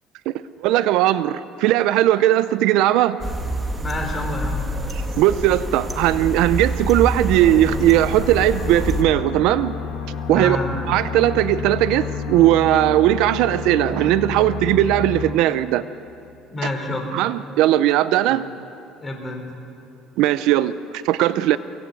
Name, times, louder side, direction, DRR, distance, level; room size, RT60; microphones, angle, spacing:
voice 1, 0.6-3.2 4.9-9.7 10.3-10.6 10.9-15.8 17.1-18.4 20.2-20.7 21.0-21.6, right 13 dB, 70° right, 14 dB, 0.6 m, -18 dB
sound 1, 3.2-9.0, right 1 dB, 15° right, 1.6 m, -27 dB
voice 2, 3.8-4.7 10.3-10.8 16.5-17.1 18.3-18.4 19.0-19.5, left 1 dB, 15° left, 2 dB, 3.7 m, -28 dB
sound 2, 7.3-15.3, left 6 dB, 80° left, 3.5 m, -30 dB
24.5 x 17.5 x 8.3 m, 2.8 s
cardioid pair, 165°, 0 cm